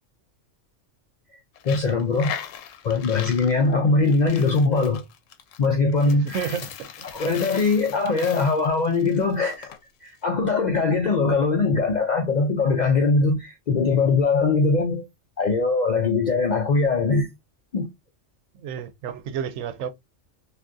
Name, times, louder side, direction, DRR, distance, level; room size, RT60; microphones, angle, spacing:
Coin (dropping), 1.6-9.8, left 9 dB, 85° left, 0.9 m, -39 dB
voice 1, 1.6-2.3 2.8-5.0 5.6-6.5 7.0-9.7 10.0-15.0 15.4-17.3 17.7-17.9, left 3 dB, 65° left, 0.4 m, -21 dB
voice 2, 6.0-6.9 18.6-19.9, right 7 dB, 90° right, 1.0 m, -31 dB
2.5 x 2.5 x 3.4 m
omnidirectional pair, 1.3 m